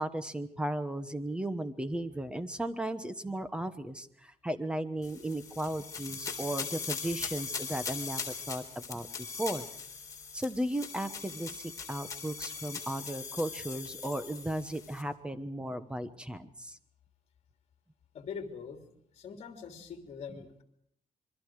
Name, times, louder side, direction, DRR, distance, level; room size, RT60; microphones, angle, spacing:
voice 1, 0.0-9.1 9.4-9.7 10.3-16.8, right 1 dB, 5° right, 11 dB, 1.2 m, -35 dB
sound 1, 5.0-15.0, left 5 dB, 25° left, 3.7 m, -40 dB
voice 2, 18.1-18.8 19.1-20.6, left 6 dB, 50° left, 5 dB, 3.2 m, -43 dB
27.0 x 23.0 x 4.9 m, 0.69 s
cardioid pair, 150°, 13 cm